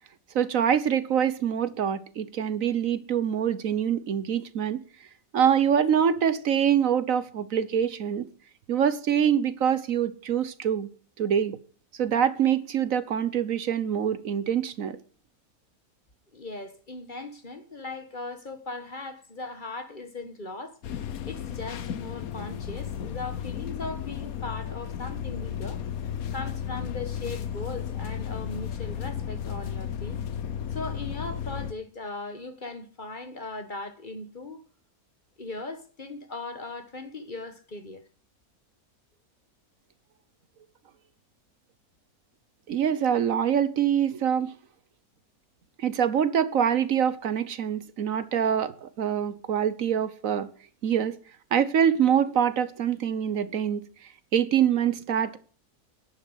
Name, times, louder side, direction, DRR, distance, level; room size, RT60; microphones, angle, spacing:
voice 1, 0.3-4.8 5.3-8.3 8.7-10.9 11.2-11.6 12.0-15.0 42.7-44.5 45.8-50.5 50.8-51.2 51.5-53.9 54.3-55.4, right 8 dB, 65° right, 1.3 m, -25 dB
voice 2, 16.3-25.8 26.3-30.2 30.7-34.6 35.4-38.0, left 2 dB, 35° left, 1.4 m, -38 dB
sound 1, 20.8-31.7, left 9 dB, 75° left, 1.3 m, -34 dB
11.5 x 11.0 x 8.2 m
omnidirectional pair, 1.6 m